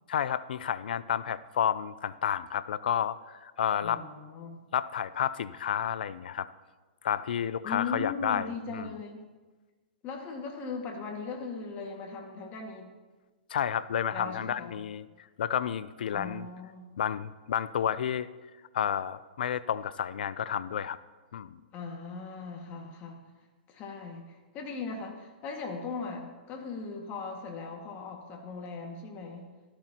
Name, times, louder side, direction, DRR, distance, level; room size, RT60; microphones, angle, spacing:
voice 1, 0.1-4.0 4.7-6.5 7.0-8.9 13.5-15.0 15.4-16.5 17.0-18.3 18.7-21.0 21.3-21.6, left 9 dB, 70° left, 16 dB, 0.5 m, -31 dB
voice 2, 3.8-4.6 7.6-9.2 10.0-12.9 14.1-14.8 16.1-16.9 21.7-23.2 23.7-29.5, left 4 dB, 30° left, 2 dB, 2.0 m, -39 dB
13.0 x 12.5 x 3.0 m, 1.3 s
hypercardioid pair, 135°, 5 cm